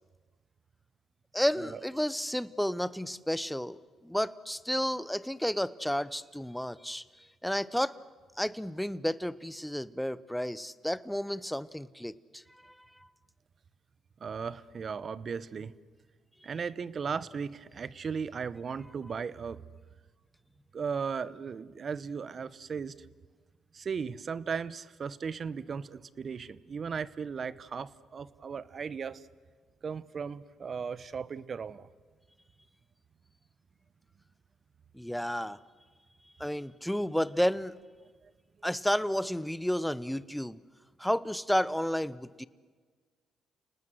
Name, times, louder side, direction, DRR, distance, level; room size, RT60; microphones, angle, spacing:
voice 1, 1.3-3.8 4.0-7.0 7.4-8.0 8.4-12.7 34.9-35.6 36.4-37.8 38.6-40.6 41.0-42.5, equal, 5° left, 18 dB, 0.8 m, -31 dB
voice 2, 14.2-15.7 16.4-19.6 20.7-22.9 23.7-29.2 29.8-31.9, right 6 dB, 50° right, 18 dB, 0.8 m, -36 dB
29.5 x 19.0 x 7.7 m, 1.5 s
cardioid pair, 80°, 0 cm